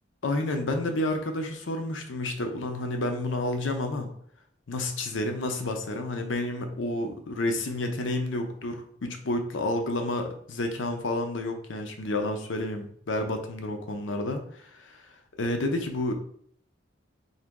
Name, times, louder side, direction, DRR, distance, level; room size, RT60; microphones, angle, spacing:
voice 1, 0.2-4.1 4.7-15.0 15.4-16.1, left 2 dB, 90° left, 5 dB, 0.7 m, -30 dB
3.9 x 2.9 x 3.6 m, 0.63 s
head